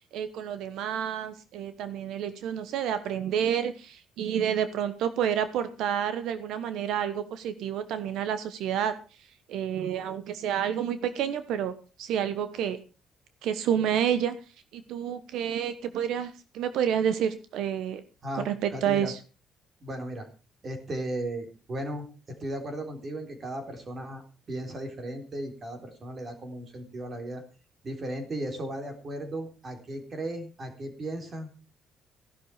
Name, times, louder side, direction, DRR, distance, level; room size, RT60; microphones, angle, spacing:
voice 1, 0.0-12.8 13.4-14.4 14.7-18.0 18.3-19.2, right 9 dB, 75° right, 11 dB, 1.2 m, -29 dB
voice 2, 18.2-19.1 19.8-20.3 20.6-22.1 22.4-24.2 24.5-27.4 27.8-31.5, right 1 dB, 30° right, 6 dB, 3.7 m, -36 dB
15.5 x 11.5 x 4.9 m, 0.35 s
cardioid pair, 170°, 0 cm